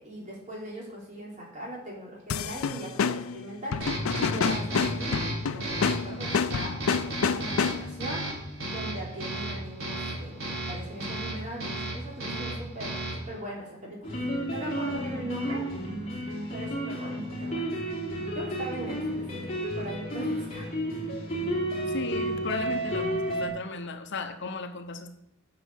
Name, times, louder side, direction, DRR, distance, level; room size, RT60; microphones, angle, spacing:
voice 1, 0.0-3.8 4.2-6.7 7.0-8.3 8.7-15.7 16.5-17.7 18.3-20.7, right 1 dB, 40° right, -4 dB, 4.0 m, -40 dB
sound 1, 2.3-8.1, left 6 dB, 85° left, 0.5 m, -29 dB
sound 2, 3.8-13.4, right 1 dB, 75° right, 4.2 m, -34 dB
sound 3, 14.0-23.5, right 1 dB, 30° left, 3.1 m, -31 dB
voice 2, 21.9-25.2, left 4 dB, 60° left, 8 dB, 0.9 m, -35 dB
9.8 x 7.0 x 6.4 m, 0.82 s
head